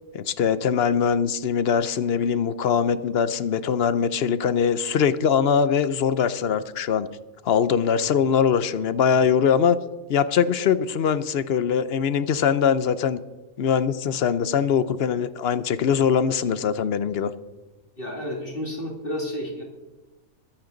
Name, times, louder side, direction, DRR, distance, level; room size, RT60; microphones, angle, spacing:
voice 1, 0.1-7.1 7.4-9.8 10.1-13.2 13.6-17.3, left 7 dB, 55° left, 14 dB, 0.7 m, -22 dB
voice 2, 18.0-19.6, left 1 dB, 40° left, -1 dB, 2.5 m, -31 dB
22.0 x 8.9 x 3.9 m, 1.2 s
omnidirectional pair, 1.5 m